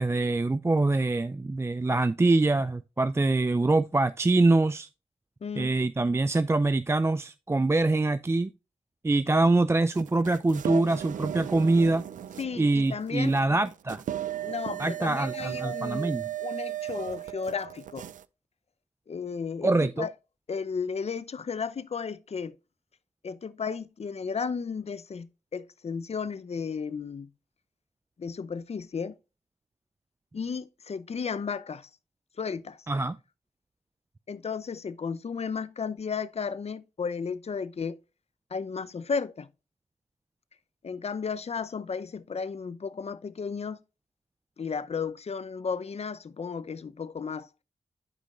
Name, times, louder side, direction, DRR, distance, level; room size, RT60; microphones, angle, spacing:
voice 1, 0.0-4.9 5.6-8.5 9.0-12.0 12.6-14.0 14.8-16.2 19.6-20.1 32.9-33.2, right 2 dB, 20° right, 0.4 m, -24 dB
voice 2, 5.4-5.7 12.4-13.4 14.4-18.1 19.1-20.1 20.5-22.5 23.2-27.3 28.2-29.2 30.3-31.9 32.4-32.9 34.3-38.0 38.5-39.5 40.8-43.8 44.6-47.5, left 5 dB, 55° left, 0.7 m, -34 dB
sound 1, 9.9-18.2, right 11 dB, 80° right, 0.4 m, -36 dB
12.0 x 5.2 x 2.5 m
cardioid pair, 50°, 13 cm